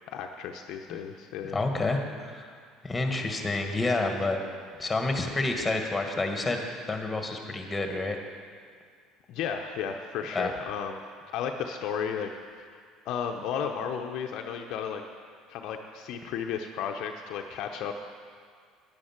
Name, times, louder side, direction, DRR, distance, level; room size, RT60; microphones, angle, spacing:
voice 1, 0.1-1.6 9.3-11.0 11.3-12.8 13.1-15.0 15.5-18.0, left 7 dB, 65° left, 3 dB, 0.7 m, -34 dB
voice 2, 1.5-2.5 2.8-4.4 4.8-8.2 10.3-10.5, left 2 dB, 15° left, 4 dB, 1.8 m, -29 dB
10.5 x 9.9 x 6.0 m, 2.1 s
hypercardioid pair, 75°, 0 cm